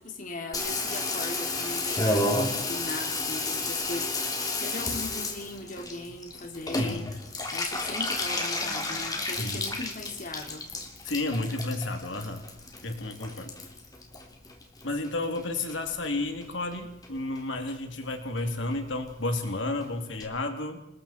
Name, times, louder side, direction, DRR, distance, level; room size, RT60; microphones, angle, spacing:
voice 1, 0.0-7.1 7.5-10.7, left 2 dB, 45° left, 2 dB, 3.0 m, -38 dB
Water tap faucet / Bathtub (filling or washing), 0.5-15.1 15.4-16.1 16.4-16.5 16.7-16.8 17.0-17.4 17.7-17.8 18.0-18.1 18.4-18.5 18.7-18.8 19.0-19.1 19.4-19.5 19.8-19.9 20.2-20.3, left 2 dB, 20° left, 3.3 m, -32 dB
voice 2, 6.7-7.1 9.4-9.7 11.0-12.4 12.8-13.5 14.8-20.8, left 2 dB, 70° left, 5 dB, 3.0 m, -31 dB
29.5 x 20.5 x 4.5 m, 0.92 s
head